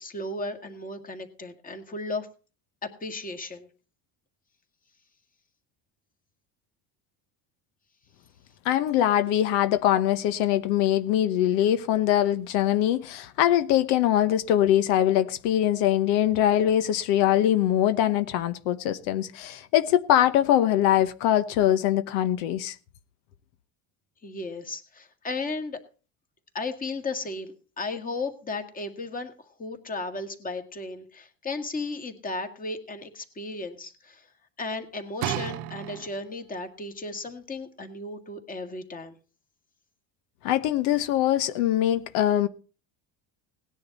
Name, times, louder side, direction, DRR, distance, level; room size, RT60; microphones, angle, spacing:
voice 1, 0.0-2.3 2.8-3.7 24.2-25.8 26.5-29.3 29.6-34.3 34.6-39.1, left 3 dB, 20° left, 1.9 m, -35 dB
voice 2, 8.6-22.8 40.4-42.5, left 11 dB, 75° left, 1.1 m, -23 dB
sound 1, 35.2-36.5 37.2-37.3, right 12 dB, 90° right, 1.0 m, -33 dB
18.5 x 10.5 x 4.1 m
cardioid pair, 145°, 42 cm